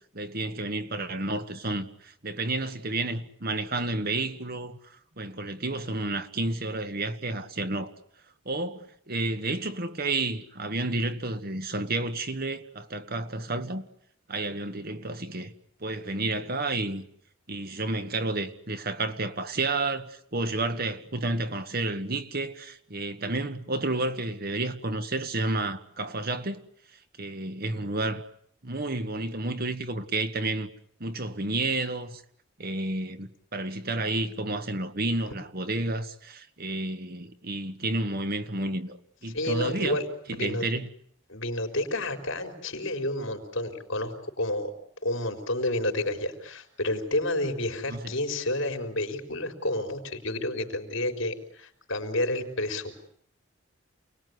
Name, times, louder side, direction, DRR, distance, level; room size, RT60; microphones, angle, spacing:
voice 1, 0.1-7.9 8.5-13.8 14.3-15.5 15.8-17.0 17.5-26.6 27.2-28.2 28.6-30.7 31.0-32.2 32.6-39.0 39.2-40.0 40.4-40.9 47.9-48.1, right 2 dB, 50° right, 1.8 m, -31 dB
voice 2, 39.3-40.7 41.3-44.7 45.0-52.9, left 1 dB, 70° left, 4.5 m, -30 dB
29.0 x 20.0 x 9.7 m
head